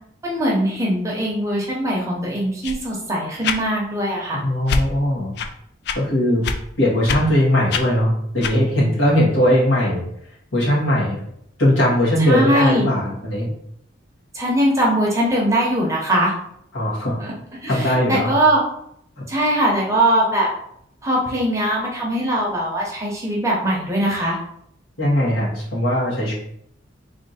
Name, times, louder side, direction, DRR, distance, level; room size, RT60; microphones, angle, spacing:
voice 1, 0.2-4.4 12.2-12.8 14.3-16.3 17.2-17.3 17.6-18.6 19.3-20.5 21.0-24.4, right 1 dB, 15° right, -3 dB, 0.8 m, -21 dB
sound 1, 2.6-2.8 3.4-3.6 4.7-4.9 5.4-5.5 5.8-6.0 6.4-6.6 7.0-7.2 7.7-7.8 8.4-8.6, left 4 dB, 55° left, 0.3 m, -23 dB
voice 2, 4.3-5.3 5.9-6.4 6.8-10.0 10.5-11.2 11.6-13.5 16.7-17.2 17.7-18.3 19.2-19.3 25.0-26.3, left 1 dB, 75° left, -6 dB, 1.6 m, -19 dB
3.4 x 2.6 x 4.2 m, 0.72 s
head